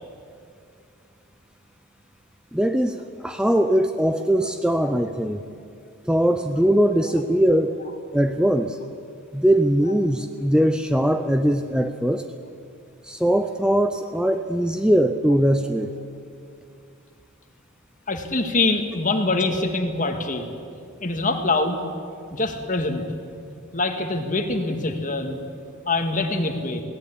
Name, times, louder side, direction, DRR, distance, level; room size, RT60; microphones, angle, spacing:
voice 1, 2.5-5.4 6.0-7.8 8.1-8.8 9.3-12.3 13.0-15.9, equal, 5° right, 7 dB, 0.6 m, -21 dB
voice 2, 18.1-20.5 21.0-21.8 22.3-23.0 23.7-25.4 25.9-26.8, left 2 dB, 35° left, 5 dB, 2.0 m, -24 dB
20.5 x 17.5 x 10.0 m, 2.4 s
head